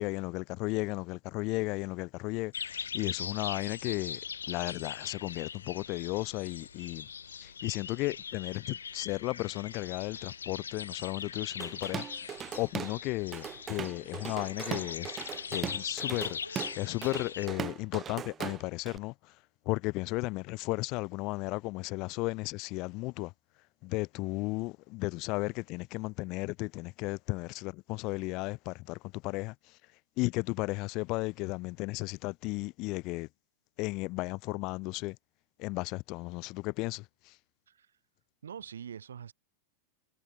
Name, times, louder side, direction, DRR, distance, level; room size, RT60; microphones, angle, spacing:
voice 1, 0.0-4.2 4.5-7.1 7.4-19.3 19.6-23.3 23.8-29.8 30.2-33.3 33.8-35.2 35.6-37.3, left 24 dB, 40° left, 1.0 m, -35 dB
sound 1, 2.5-17.5, left 6 dB, 70° left, 0.5 m, -41 dB
sound 2, 7.4-7.5 8.9-9.0 10.1-10.3 12.8-12.9 14.5-15.3 15.9-16.0 16.4-17.2, equal, 90° right, 3.2 m, -55 dB
Drum kit / Drum, 11.6-13.0 13.3-19.0, right 8 dB, 25° right, 0.5 m, -39 dB
voice 2, 38.4-39.3, right 8 dB, 65° right, 3.6 m, -44 dB
figure-of-eight pair, 90°, 0 cm